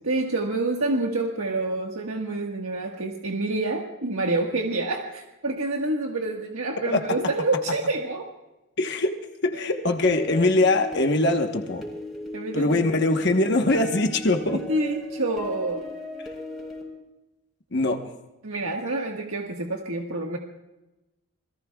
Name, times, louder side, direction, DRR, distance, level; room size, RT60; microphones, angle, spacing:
voice 1, 0.0-8.2 9.5-9.7 12.3-13.2 14.5-15.8 18.4-20.4, right 2 dB, 80° right, 0 dB, 1.6 m, -28 dB
voice 2, 8.8-9.1 9.4-11.8 12.5-14.6 17.7-18.0, left 2 dB, 50° left, 4 dB, 1.2 m, -22 dB
sound 1, 10.0-16.8, left 2 dB, ahead, 4.1 m, -37 dB
28.0 x 22.0 x 2.4 m, 1.0 s
head